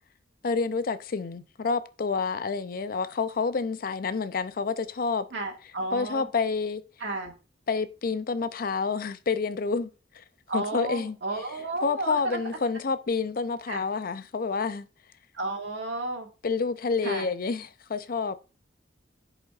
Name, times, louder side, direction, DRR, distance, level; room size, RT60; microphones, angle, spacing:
voice 1, 0.4-5.3 5.9-6.8 7.7-9.9 10.1-10.2 10.5-11.2 11.8-14.9 16.4-18.4, left 4 dB, 55° left, 0.5 m, -28 dB
voice 2, 5.3-6.3 7.0-7.3 10.5-12.4 13.7-13.8 15.3-16.3 17.0-17.3, right 2 dB, 85° right, 1.9 m, -32 dB
11.0 x 5.0 x 2.5 m
head